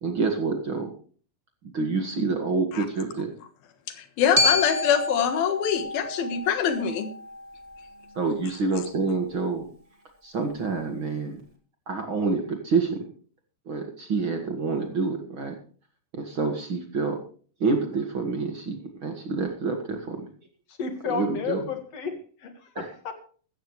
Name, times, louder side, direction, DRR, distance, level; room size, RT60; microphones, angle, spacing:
voice 1, 0.0-1.0 1.7-3.3 8.2-9.7 10.2-11.4 11.9-13.1 13.7-15.5 16.1-17.2 17.6-20.3 21.1-21.6 22.8-22.9, right 4 dB, 45° right, 4 dB, 2.1 m, -27 dB
voice 2, 4.0-7.1, left 8 dB, 85° left, 9 dB, 3.3 m, -24 dB
Glockenspiel, 4.4-8.5, left 2 dB, 10° right, 1.9 m, -29 dB
voice 3, 20.8-23.1, left 5 dB, 50° left, 7 dB, 2.7 m, -32 dB
15.0 x 14.5 x 3.2 m, 0.42 s
omnidirectional pair, 4.1 m